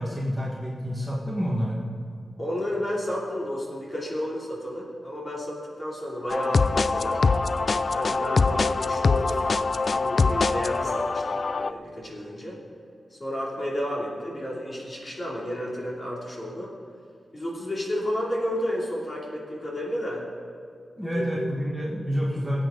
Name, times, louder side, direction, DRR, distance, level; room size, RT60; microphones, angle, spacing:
voice 1, 0.0-1.8 21.0-22.6, equal, 5° right, -5 dB, 1.6 m, -28 dB
voice 2, 2.4-7.2 7.9-9.6 9.9-12.6 13.1-16.7 17.3-20.3 20.9-21.5, equal, 30° left, -4 dB, 2.9 m, -32 dB
sound 1, 6.3-11.7, left 4 dB, 45° left, 0.3 m, -23 dB
19.5 x 8.5 x 3.9 m, 2.4 s
wide cardioid pair, 155°, 0 cm